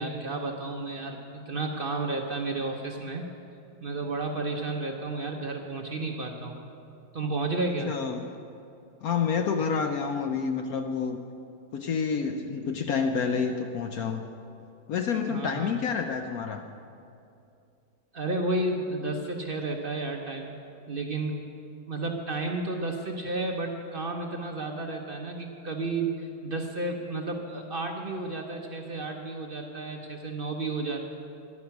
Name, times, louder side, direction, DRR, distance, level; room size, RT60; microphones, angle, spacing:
voice 1, 0.0-3.3 3.8-6.6 7.1-7.9 15.3-15.8 18.1-20.5 20.9-21.4 21.9-31.1, right 2 dB, 60° right, 2 dB, 0.6 m, -32 dB
voice 2, 7.9-8.2 9.0-11.2 11.7-14.2 14.9-16.6, left 6 dB, 70° left, 5 dB, 0.8 m, -28 dB
14.0 x 11.0 x 5.8 m, 2.6 s
omnidirectional pair, 2.1 m